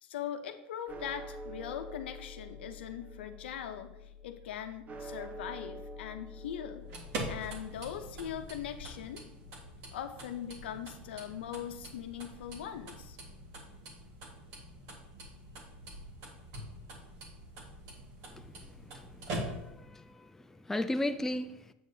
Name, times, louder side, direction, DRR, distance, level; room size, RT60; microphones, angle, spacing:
voice 1, 0.0-6.9 7.3-9.2 9.9-13.2, left 9 dB, 85° left, 0.7 m, -41 dB
sound 1, 0.9-11.3, left 1 dB, 25° right, 0.6 m, -48 dB
sound 2, 6.7-19.9, right 1 dB, 60° right, 1.7 m, -44 dB
voice 2, 18.9-20.3 20.6-21.6, left 1 dB, 5° left, 0.3 m, -35 dB
7.8 x 6.5 x 2.7 m
supercardioid pair, 110°, 6 cm